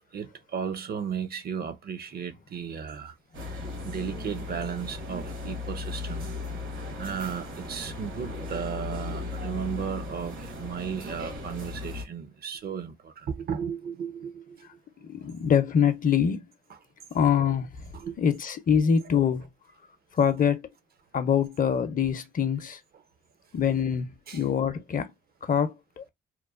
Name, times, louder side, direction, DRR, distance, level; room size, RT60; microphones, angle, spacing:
voice 1, 0.1-3.1 3.5-6.3 7.0-14.7 17.9-18.1 24.3-24.4, right 7 dB, 50° right, 0.5 m, -35 dB
sound 1, 3.3-12.0, left 3 dB, 75° right, 1.2 m, -37 dB
voice 2, 15.0-16.5 17.1-17.9 18.2-19.5 20.1-20.6 21.1-22.8 23.5-25.1 25.4-26.1, left 7 dB, 45° left, 0.6 m, -24 dB
2.9 x 2.1 x 2.3 m
cardioid pair, 90°, 20 cm